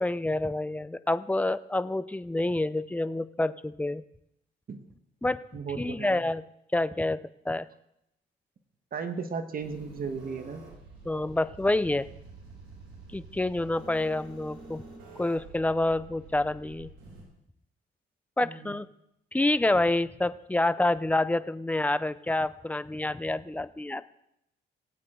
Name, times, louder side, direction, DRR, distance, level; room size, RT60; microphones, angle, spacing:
voice 1, 0.0-4.0 5.2-5.4 5.8-6.4 6.7-7.2 7.5-7.7 11.1-12.1 13.1-14.8 15.2-16.9 18.4-18.9 19.3-24.0, left 2 dB, 5° left, 15 dB, 0.5 m, -27 dB
voice 2, 5.5-6.2 8.9-10.6 18.4-18.8, right 5 dB, 45° right, 8 dB, 1.5 m, -35 dB
sound 1, 9.6-17.2, right 3 dB, 90° right, 4.5 m, -48 dB
19.5 x 8.8 x 3.8 m, 0.79 s
cardioid pair, 90°, 20 cm